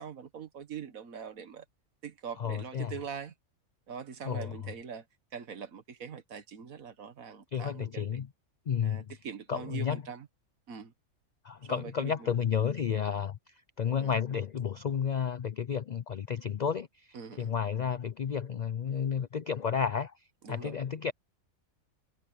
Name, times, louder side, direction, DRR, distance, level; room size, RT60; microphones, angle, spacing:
voice 1, 0.0-1.6 2.0-3.3 3.9-5.0 5.3-8.2 8.8-10.3 10.7-10.9 11.6-12.3 14.0-14.1 17.1-17.5 20.4-20.8, right 7 dB, 80° right, 1.8 m, -43 dB
voice 2, 2.4-2.9 4.2-4.7 7.5-8.3 8.7-9.1 9.5-10.0 11.4-13.4 13.8-16.9 17.4-20.1 20.5-21.1, left 7 dB, 70° left, 0.4 m, -31 dB
omnidirectional pair, 1.4 m